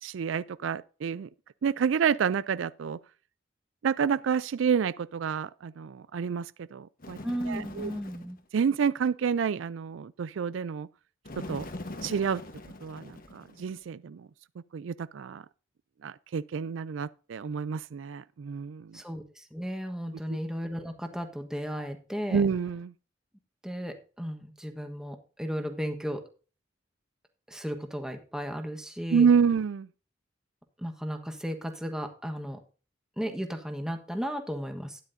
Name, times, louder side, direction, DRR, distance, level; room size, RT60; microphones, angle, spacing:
voice 1, 0.0-1.3 1.6-3.0 3.8-7.2 7.5-7.9 8.5-10.9 11.4-11.7 12.0-12.4 12.8-14.3 14.7-15.4 16.0-19.0 20.3-20.4 22.3-22.9 29.1-29.9, right 6 dB, 85° right, 0.4 m, -28 dB
Bird, 7.0-8.4 11.2-13.8, left 1 dB, 50° left, 1.2 m, -42 dB
voice 2, 7.2-8.4 18.9-22.5 23.6-26.2 27.5-29.3 30.8-32.6 33.2-35.0, equal, 5° right, 1.3 m, -35 dB
12.5 x 9.8 x 2.7 m
head